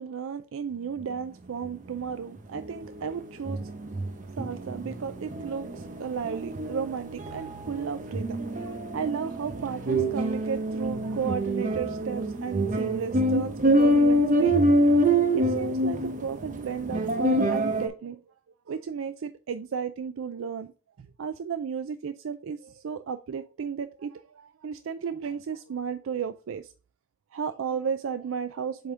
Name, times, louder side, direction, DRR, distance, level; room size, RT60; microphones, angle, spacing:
voice 1, 0.0-3.6 4.4-14.8 15.4-18.2 18.7-20.7 21.2-26.7 27.3-28.9, right 7 dB, 90° right, 0.4 m, -34 dB
sound 1, 2.6-2.7 3.0-3.1 3.5-17.9, right 1 dB, 40° right, 0.7 m, -25 dB
7.7 x 3.6 x 3.7 m
head